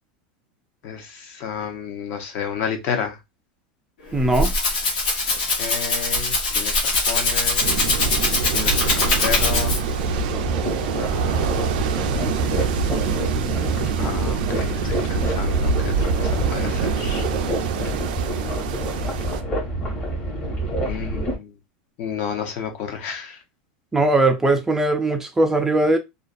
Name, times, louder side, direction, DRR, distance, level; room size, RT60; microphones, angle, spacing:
voice 1, 0.8-3.2 5.6-8.0 8.5-9.7 11.0-11.6 14.0-17.2 18.3-18.7 20.8-21.5 22.0-23.4, left 7 dB, 50° left, 0.7 m, -31 dB
Rattle (instrument), 4.1-10.0, left 2 dB, 90° left, 1.1 m, -22 dB
voice 2, 4.1-4.5 23.9-26.0, right 2 dB, 10° right, 0.3 m, -19 dB
sound 1, 7.6-19.4, right 6 dB, 75° right, 0.4 m, -25 dB
sound 2, 10.0-21.4, right 1 dB, 30° left, 1.1 m, -27 dB
2.5 x 2.2 x 2.4 m
supercardioid pair, 135°, 5 cm